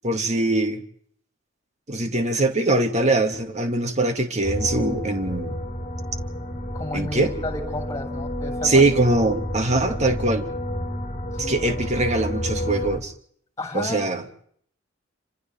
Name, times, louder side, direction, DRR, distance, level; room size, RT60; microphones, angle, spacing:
voice 1, 0.0-0.8 1.9-5.6 6.9-7.3 8.6-10.5 11.4-13.1 13.7-14.2, right 2 dB, 35° right, 5 dB, 2.4 m, -22 dB
sound 1, 4.4-13.0, left 1 dB, 35° left, 2.6 m, -30 dB
voice 2, 6.7-8.8 11.4-11.8 13.6-14.2, left 2 dB, 15° left, 3 dB, 7.0 m, -32 dB
29.5 x 26.5 x 3.7 m, 0.63 s
head